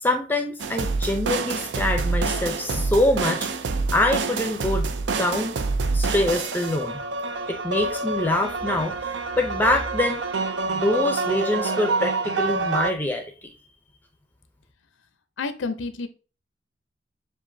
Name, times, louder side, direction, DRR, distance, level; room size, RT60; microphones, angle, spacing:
voice 1, 0.0-3.5 3.9-4.9 5.2-5.6 5.9-7.0 7.5-10.2 10.7-13.5, left 1 dB, 10° left, 3 dB, 0.5 m, -25 dB
sound 1, 0.6-12.9, right 4 dB, 70° right, 0.5 m, -27 dB
voice 2, 15.4-16.1, left 4 dB, 90° left, 10 dB, 0.6 m, -29 dB
7.3 x 2.5 x 2.6 m, 0.34 s
head